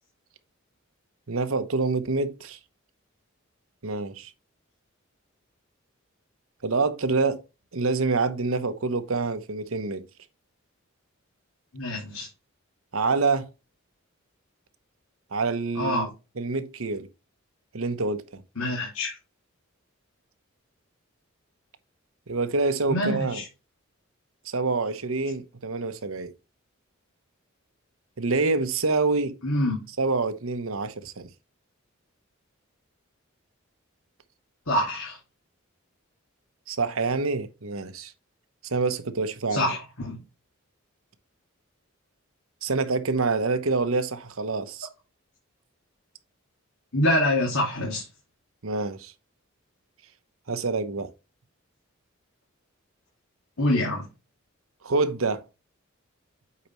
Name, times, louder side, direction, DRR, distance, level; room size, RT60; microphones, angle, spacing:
voice 1, 1.3-2.6 3.8-4.3 6.6-7.4 7.7-10.1 12.9-13.5 15.3-16.1 16.4-17.1 17.7-18.4 22.3-23.4 24.4-26.3 28.2-29.4 30.0-31.3 36.7-38.1 38.6-39.7 42.6-44.9 48.6-49.1 50.5-51.1 54.8-55.4, right 3 dB, 80° right, 0.9 m, -26 dB
voice 2, 11.7-12.3 15.8-16.1 18.6-19.2 22.9-23.5 29.4-29.8 34.7-35.2 39.5-40.2 46.9-48.0 53.6-54.1, left 1 dB, 80° left, 2.4 m, -25 dB
8.5 x 5.0 x 3.1 m
head